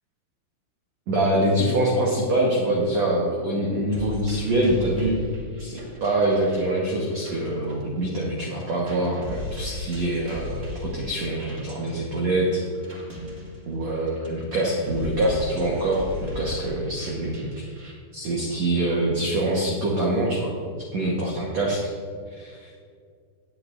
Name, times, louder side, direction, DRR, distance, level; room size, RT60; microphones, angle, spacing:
voice 1, 1.1-5.2 5.6-12.6 13.7-17.5 18.1-20.5 20.9-21.8 22.4-22.7, right 1 dB, 90° right, -3 dB, 1.5 m, -24 dB
sound 1, 3.9-8.3 8.6-17.9, left 2 dB, 40° right, 0.9 m, -38 dB
18.5 x 8.5 x 2.6 m, 2.2 s
omnidirectional pair, 5.1 m